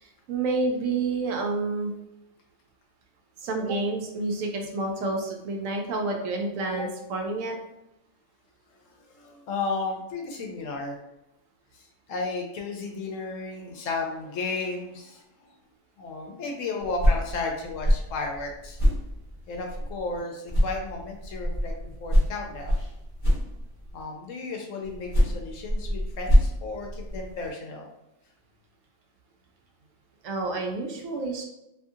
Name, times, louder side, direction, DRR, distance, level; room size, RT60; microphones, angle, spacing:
voice 1, 0.0-1.9 3.4-7.6 30.2-31.4, right 3 dB, 70° right, 2 dB, 0.9 m, -29 dB
voice 2, 9.1-11.0 11.7-15.2 16.0-18.8 19.5-22.8 23.9-27.9, left 3 dB, 70° left, 1 dB, 0.9 m, -34 dB
sound 1, 16.8-20.2 20.5-24.0 24.8-27.5, equal, 30° left, 0.7 m, -25 dB
2.7 x 2.6 x 2.4 m, 0.89 s
omnidirectional pair, 1.5 m